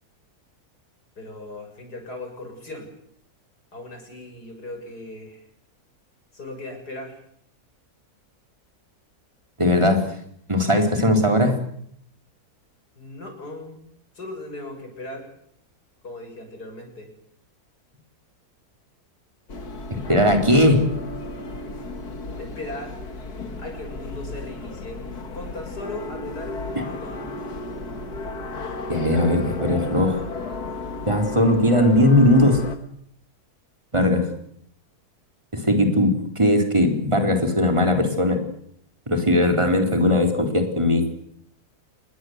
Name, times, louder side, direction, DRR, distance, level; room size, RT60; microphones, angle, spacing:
voice 1, 1.2-2.9 3.7-5.4 6.3-7.2 13.0-13.8 14.2-15.3 16.0-17.1 22.4-23.0 23.6-25.1 25.3-27.3, left 2 dB, 90° left, 4 dB, 7.4 m, -37 dB
voice 2, 9.6-10.0 10.5-11.5 19.9-20.9 28.9-30.2 31.1-32.6 33.9-34.3 35.5-38.4 39.1-41.1, left 1 dB, 20° right, 5 dB, 3.8 m, -19 dB
sound 1, 19.5-32.8, left 2 dB, 75° left, 2.5 m, -34 dB
27.0 x 21.0 x 8.0 m, 0.70 s
omnidirectional pair, 1.7 m